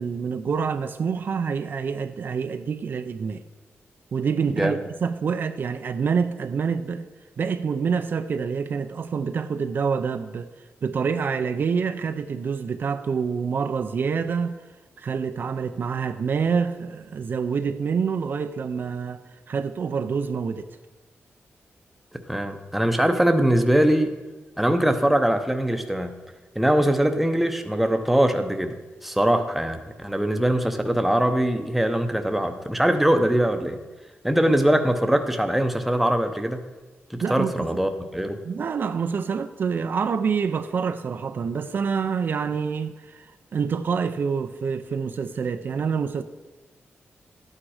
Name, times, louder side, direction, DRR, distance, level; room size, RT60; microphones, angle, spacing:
voice 1, 0.0-3.4 4.1-7.1 7.4-10.5 10.8-14.5 15.0-19.2 19.5-20.7 37.2-37.7 38.4-46.2, right 6 dB, 50° right, 0.4 m, -27 dB
voice 2, 22.3-24.1 24.6-26.1 26.6-28.8 29.0-33.8 34.2-36.6 37.1-38.4, right 1 dB, 5° right, 0.7 m, -22 dB
12.5 x 8.7 x 4.9 m
wide cardioid pair, 170°, 4 cm